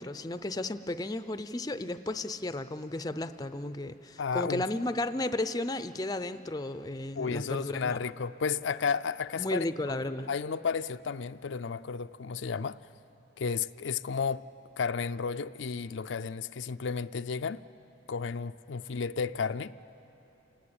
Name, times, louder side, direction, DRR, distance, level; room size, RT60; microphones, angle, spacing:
voice 1, 0.0-8.0 9.4-10.3, left 2 dB, 20° left, 0.5 m, -34 dB
voice 2, 4.2-4.6 7.1-10.0 10.3-12.8 13.4-14.4 14.8-17.6 18.1-19.8, left 5 dB, 75° left, 0.5 m, -32 dB
28.0 x 19.5 x 8.8 m
head